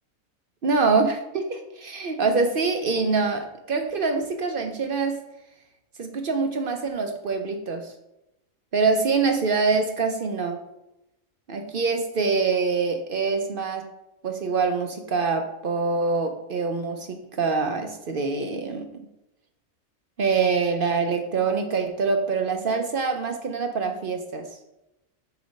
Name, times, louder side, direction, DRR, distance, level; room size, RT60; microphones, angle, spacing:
voice 1, 0.6-5.2 6.0-7.9 8.7-10.6 11.5-13.9 14.2-19.0 20.2-24.4, right 4 dB, 55° right, 5 dB, 0.6 m, -25 dB
5.0 x 4.1 x 5.1 m, 0.91 s
omnidirectional pair, 1.4 m